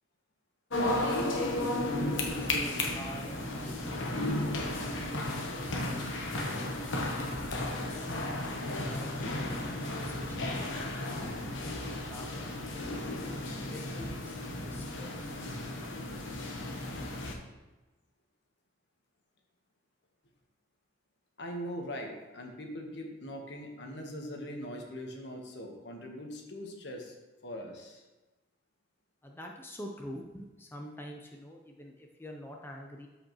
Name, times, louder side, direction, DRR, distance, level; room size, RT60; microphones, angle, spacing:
sound 1, 0.7-17.3, left 1 dB, 85° left, 1.0 m, -34 dB
voice 1, 1.1-3.7 5.4-7.5 8.0-9.7 10.0-12.6 13.1-15.7 29.2-33.1, equal, 10° left, 1 dB, 0.6 m, -47 dB
voice 2, 21.4-27.2 27.4-28.0, equal, 65° left, 2 dB, 1.3 m, -41 dB
13.0 x 5.0 x 3.1 m, 1.2 s
head